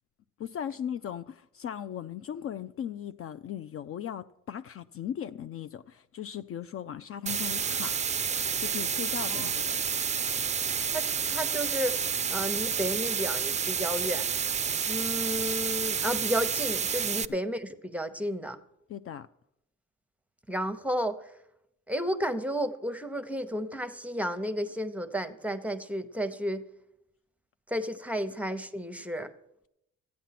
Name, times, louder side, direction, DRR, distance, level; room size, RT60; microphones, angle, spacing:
voice 1, 0.4-8.0 8.6-9.7 18.9-19.3, left 9 dB, 50° left, 0.4 m, -38 dB
sound 1, 7.3-17.3, right 7 dB, 25° right, 0.4 m, -30 dB
voice 2, 10.9-12.0 12.3-14.4 14.9-18.6 20.5-21.2 21.9-26.6 27.7-29.3, equal, 5° right, 0.8 m, -32 dB
13.5 x 9.4 x 5.8 m
cardioid pair, 90°, 30 cm